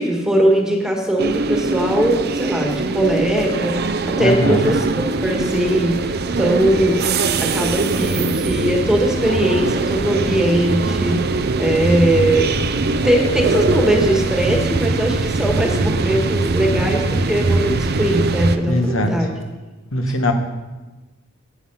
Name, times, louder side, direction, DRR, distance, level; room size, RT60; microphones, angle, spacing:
voice 1, 0.0-19.3, right 1 dB, 5° right, 1 dB, 1.6 m, -20 dB
sound 1, 1.2-18.6, right 3 dB, 50° right, 0.6 m, -21 dB
voice 2, 4.2-4.7 18.7-19.3 19.9-20.3, left 1 dB, 70° left, 6 dB, 1.3 m, -20 dB
sound 2, 4.7-19.4, right 1 dB, 65° right, 1.3 m, -34 dB
11.0 x 9.0 x 5.7 m, 1.2 s
head